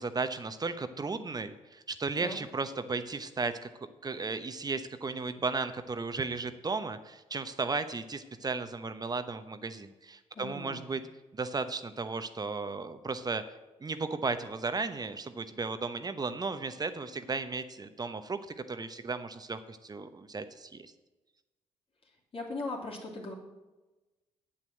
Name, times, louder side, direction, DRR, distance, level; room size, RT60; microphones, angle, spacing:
voice 1, 0.0-3.7 4.0-11.0 11.3-13.4 13.8-18.4 18.7-20.9, right 4 dB, 30° right, 11 dB, 1.0 m, -35 dB
voice 2, 10.4-10.8 22.3-23.3, left 2 dB, 45° left, -1 dB, 2.9 m, -38 dB
8.4 x 7.7 x 7.6 m, 1.1 s
supercardioid pair, 65°, 13 cm